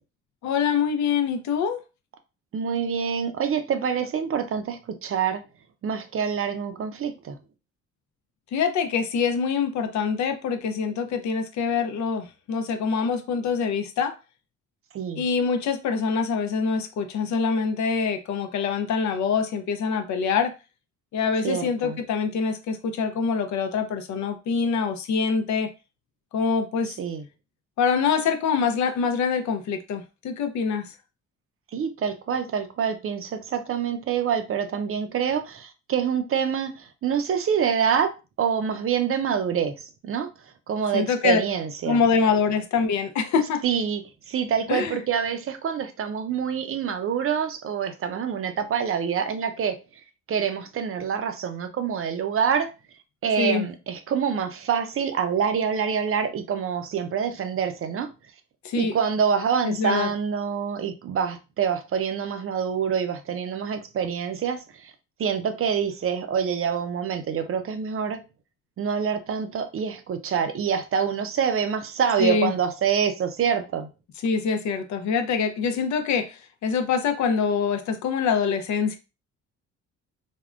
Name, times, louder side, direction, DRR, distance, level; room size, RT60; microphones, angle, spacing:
voice 1, 0.4-1.8 8.5-14.1 15.2-20.5 21.1-25.7 26.3-27.0 27.8-30.9 40.9-41.4 41.9-43.6 44.7-45.0 53.4-53.7 58.6-58.9 59.6-60.1 72.2-72.5 74.2-79.0, left 5 dB, 70° left, 0.6 m, -25 dB
voice 2, 2.5-5.4 5.8-7.4 14.9-15.2 21.4-22.0 27.0-27.2 31.7-38.1 38.4-39.7 40.0-40.3 40.7-42.0 43.6-44.0 44.3-49.8 50.3-52.7 53.2-58.1 58.8-64.9 65.2-68.2 68.8-73.9, right 7 dB, 45° right, 0.5 m, -26 dB
3.4 x 2.1 x 2.4 m
cardioid pair, 90°, 30 cm